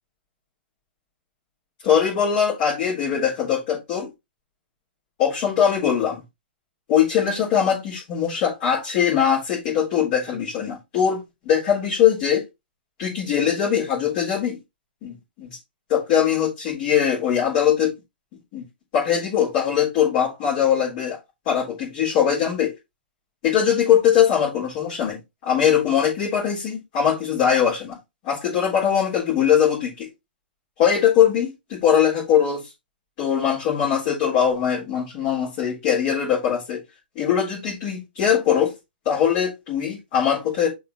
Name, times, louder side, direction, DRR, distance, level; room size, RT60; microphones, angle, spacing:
voice 1, 1.8-4.1 5.2-6.2 6.9-12.4 13.0-14.6 15.0-15.5 15.9-17.9 18.5-18.6 18.9-21.2 21.5-22.7 23.4-28.0 28.2-30.1 30.8-32.7 33.2-36.8 37.2-38.7 39.0-40.7, left 8 dB, 40° left, 3.9 m, -21 dB
11.0 x 4.0 x 3.2 m
figure-of-eight pair, 115°, 6 cm